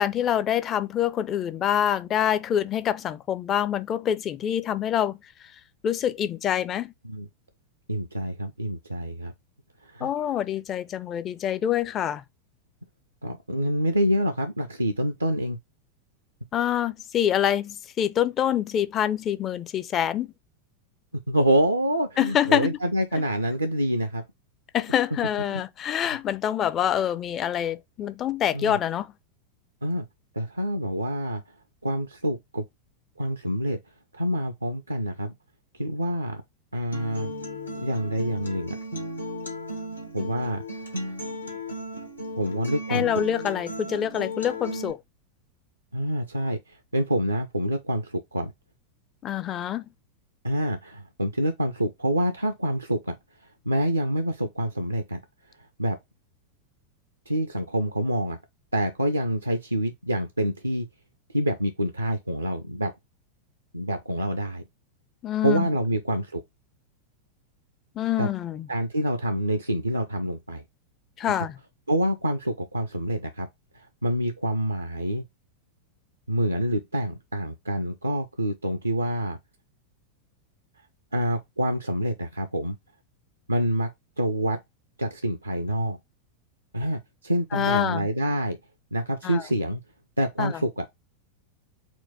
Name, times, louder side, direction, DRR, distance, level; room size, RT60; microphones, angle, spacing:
voice 1, 0.0-5.2 5.8-6.9 10.0-12.2 16.5-20.3 22.2-22.8 24.7-29.1 42.9-45.0 49.2-49.9 65.2-65.7 68.0-68.7 71.2-71.6 87.5-88.1 89.2-89.4 90.4-90.6, left 10 dB, 30° left, 0.4 m, -26 dB
voice 2, 7.9-9.3 9.8-10.1 13.2-15.6 21.3-24.2 28.5-28.8 29.8-30.1 30.3-31.4 31.8-32.7 33.2-33.8 34.1-35.3 35.8-36.4 36.7-37.3 37.8-38.8 40.1-41.1 42.4-43.0 45.9-48.5 50.4-53.2 53.7-55.2 55.8-56.0 57.3-58.4 58.7-60.9 61.3-62.9 63.7-64.6 65.4-66.4 68.2-68.3 68.7-70.6 71.9-73.5 73.7-75.2 76.3-79.4 81.1-82.8 83.5-83.9 84.2-84.6 85.0-86.0 86.7-88.6 88.9-89.8 90.2-91.0, equal, 85° right, 0.5 m, -27 dB
Acoustic guitar, 36.9-44.9, left 1 dB, 80° left, 1.3 m, -35 dB
4.4 x 2.1 x 4.0 m
figure-of-eight pair, 90°, 0 cm